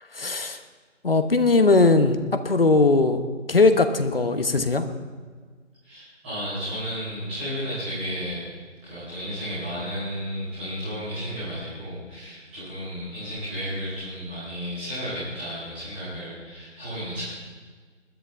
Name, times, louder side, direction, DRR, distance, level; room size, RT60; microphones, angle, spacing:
voice 1, 0.1-0.6 1.0-4.9, left 3 dB, 50° left, 8 dB, 1.1 m, -20 dB
voice 2, 5.8-17.2, equal, 10° right, -12 dB, 4.1 m, -33 dB
20.5 x 13.5 x 3.5 m, 1.5 s
figure-of-eight pair, 180°, 38 cm